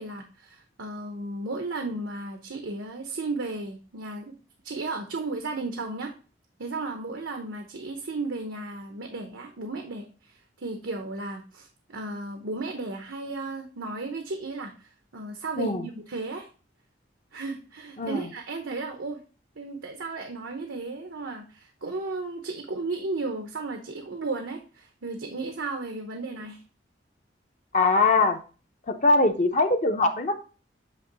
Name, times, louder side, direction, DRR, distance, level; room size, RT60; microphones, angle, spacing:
voice 1, 0.0-4.3 4.6-6.1 6.6-16.5 17.3-19.2 19.6-26.6, right 3 dB, 85° right, 5 dB, 0.8 m, -34 dB
voice 2, 27.7-28.4 28.9-30.4, left 3 dB, 40° left, 5 dB, 0.7 m, -22 dB
8.4 x 3.0 x 3.9 m, 0.35 s
head